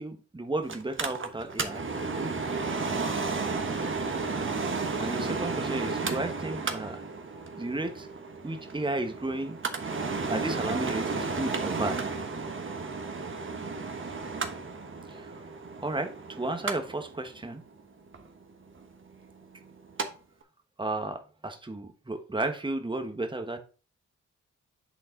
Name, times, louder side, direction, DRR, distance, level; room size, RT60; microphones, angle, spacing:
voice 1, 0.0-1.8 5.0-7.0 7.6-8.1 8.4-9.6 10.3-12.0 15.1-15.3 15.8-17.6 20.8-23.6, right 2 dB, 15° right, 7 dB, 1.1 m, -33 dB
Mechanical fan, 0.7-20.1 20.4-20.5, right 4 dB, 40° right, 1.2 m, -33 dB
8.3 x 3.8 x 3.9 m, 0.36 s
supercardioid pair, 45°, 31 cm